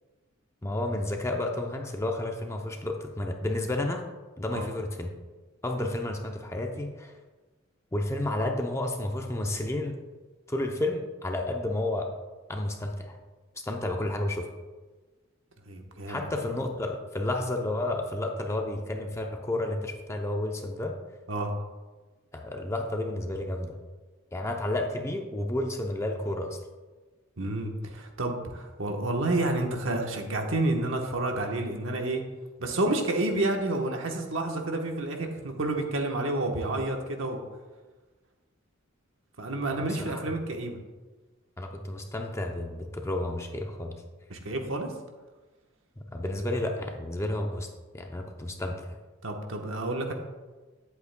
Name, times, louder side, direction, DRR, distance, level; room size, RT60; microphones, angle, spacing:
voice 1, 0.6-4.0 4.4-5.1 5.6-7.1 7.9-10.0 10.5-12.1 12.5-13.2 13.6-14.5 16.1-21.0 22.3-23.8 24.3-26.6 40.0-40.2 41.6-44.0 46.1-47.7 47.9-49.0, left 1 dB, 15° left, 3 dB, 0.6 m, -31 dB
voice 2, 15.7-16.3 21.3-21.5 27.4-32.2 32.6-37.4 39.4-40.8 44.3-44.9 49.2-50.1, right 2 dB, 75° right, 3 dB, 1.1 m, -29 dB
10.5 x 8.1 x 2.2 m, 1.3 s
head